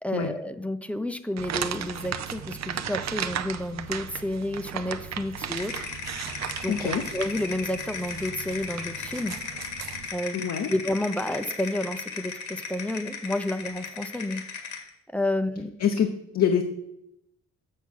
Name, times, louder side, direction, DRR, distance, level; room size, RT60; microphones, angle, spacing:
voice 1, 0.0-5.8 6.6-9.4 10.1-10.4 10.7-14.4 15.1-15.7, left 1 dB, 5° left, 9 dB, 0.5 m, -30 dB
sound 1, 1.4-10.1, right 8 dB, 65° right, 0.7 m, -35 dB
sound 2, 5.5-14.9, left 6 dB, 80° left, 2.0 m, -37 dB
voice 2, 6.7-7.0 10.3-10.7 15.8-16.6, left 8 dB, 60° left, 4 dB, 0.9 m, -25 dB
7.4 x 7.1 x 6.3 m, 0.81 s
wide cardioid pair, 135°, 29 cm